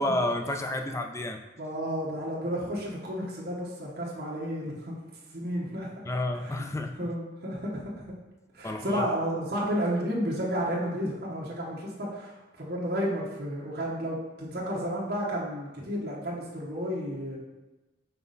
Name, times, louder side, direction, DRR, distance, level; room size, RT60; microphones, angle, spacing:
voice 1, 0.0-1.4 6.1-7.0 8.6-9.1, left 1 dB, 15° left, 5 dB, 0.3 m, -30 dB
voice 2, 1.6-5.0 5.3-5.9 6.4-6.6 7.0-7.8 8.5-17.4, equal, 50° right, -5 dB, 1.1 m, -32 dB
5.8 x 4.1 x 3.9 m, 1.1 s
head